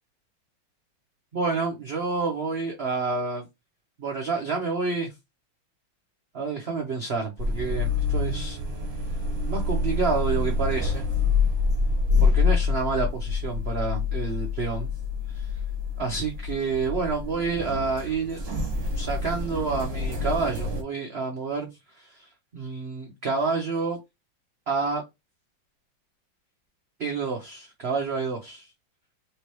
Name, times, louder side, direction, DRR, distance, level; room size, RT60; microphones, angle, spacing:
voice 1, 1.3-3.5 4.0-5.1 6.3-8.6 9.5-11.1 12.2-14.9 15.3-15.5 16.0-18.4 19.0-21.7 22.0-24.0 24.7-25.0 27.0-28.7, right 4 dB, 85° right, 0.5 m, -29 dB
sound 1, 7.4-20.8, left 4 dB, 35° right, 1.2 m, -27 dB
3.5 x 3.2 x 3.0 m
omnidirectional pair, 2.2 m